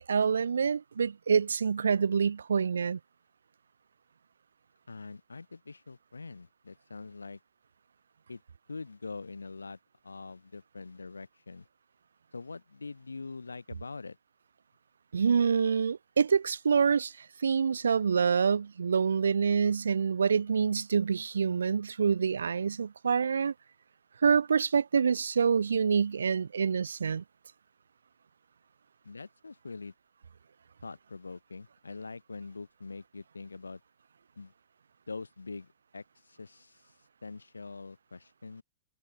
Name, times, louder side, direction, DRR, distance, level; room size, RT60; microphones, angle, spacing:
voice 1, 0.0-3.0 15.1-23.5 24.2-27.2, right 6 dB, 80° right, 0.4 m, -26 dB
voice 2, 4.9-7.4 8.3-8.4 8.7-9.8 10.0-11.7 12.3-14.2 29.0-29.9 30.8-33.8 34.4-34.5 35.1-36.9 37.2-38.6, left 4 dB, 85° left, 0.9 m, -44 dB
figure-of-eight pair, 105°, 0 cm